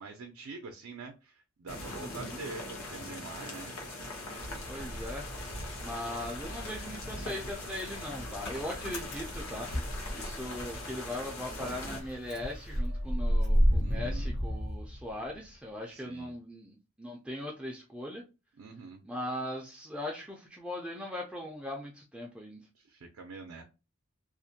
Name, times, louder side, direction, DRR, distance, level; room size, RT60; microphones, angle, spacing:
voice 1, 0.0-3.7 13.8-14.3 15.9-16.4 18.6-19.0 22.8-23.6, right 3 dB, 80° right, 4 dB, 0.4 m, -45 dB
sound 1, 1.7-12.0, left 2 dB, 90° left, 0.8 m, -42 dB
voice 2, 1.9-2.5 4.7-9.7 10.1-18.2 19.0-22.6, left 1 dB, 5° right, -1 dB, 0.3 m, -39 dB
sound 2, 4.4-12.8, equal, 75° left, 1.2 m, -45 dB
Motor vehicle (road) / Engine starting, 4.6-5.8 6.1-10.7 11.0-11.1 11.4-15.5, equal, 50° left, 0.7 m, -31 dB
2.4 x 2.1 x 2.7 m, 0.29 s
head